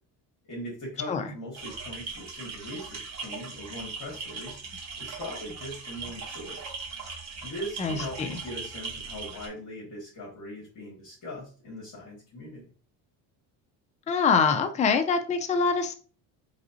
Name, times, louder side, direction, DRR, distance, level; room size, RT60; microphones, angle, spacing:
voice 1, 0.5-4.6 5.0-6.7 7.4-12.6, left 1 dB, 45° left, -5 dB, 2.1 m, -40 dB
sound 1, 1.5-9.5, right 4 dB, 40° right, 1.2 m, -39 dB
voice 2, 7.8-8.3 14.1-16.0, left 5 dB, 15° left, 7 dB, 0.4 m, -24 dB
4.0 x 3.4 x 2.8 m, 0.39 s
cardioid pair, 130°, 43 cm